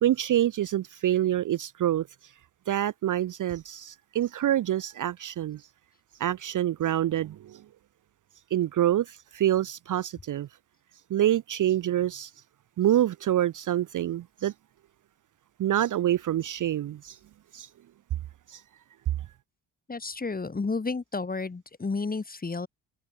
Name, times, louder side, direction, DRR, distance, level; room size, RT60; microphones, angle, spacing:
voice 1, 0.0-2.1 2.7-5.6 6.2-7.6 8.5-10.5 11.1-12.3 12.8-14.5 15.6-17.2 17.5-17.7 18.5-18.6, right 12 dB, 45° right, 0.6 m, -26 dB
voice 2, 19.9-22.7, left 4 dB, 20° left, 1.3 m, -31 dB
hypercardioid pair, 50°, 45 cm